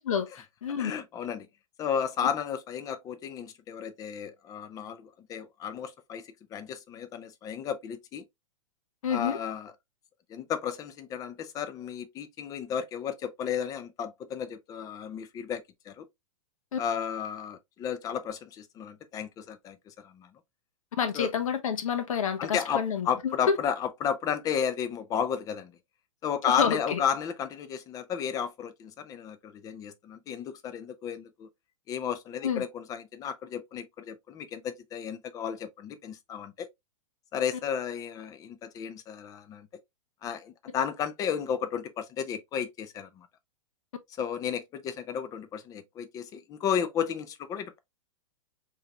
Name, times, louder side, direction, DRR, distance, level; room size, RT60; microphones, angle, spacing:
voice 1, 0.0-0.9 9.0-9.4 16.7-16.8 21.0-23.6 26.5-27.0 32.4-32.6, left 7 dB, 80° left, 1.0 m, -29 dB
voice 2, 0.8-1.5 1.8-8.3 9.1-9.7 10.3-16.1 16.8-20.3 21.1-21.3 22.4-25.7 26.2-31.5 31.9-36.7 37.3-39.7 40.2-43.3 44.2-47.8, left 8 dB, 20° left, 0.5 m, -33 dB
4.8 x 3.0 x 2.4 m
hypercardioid pair, 140°, 17 cm